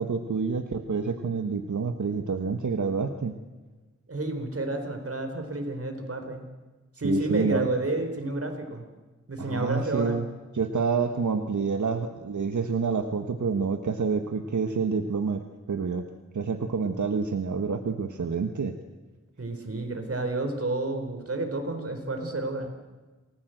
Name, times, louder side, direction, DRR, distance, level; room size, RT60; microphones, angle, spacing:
voice 1, 0.0-3.3 7.0-7.7 9.4-10.3 10.5-16.1 16.3-18.8, right 5 dB, 80° right, 6 dB, 1.4 m, -28 dB
voice 2, 4.1-6.4 7.0-8.8 9.3-10.2 19.4-22.7, right 2 dB, 50° right, 5 dB, 4.2 m, -30 dB
27.5 x 19.5 x 7.9 m, 1.3 s
wide cardioid pair, 85°, 29 cm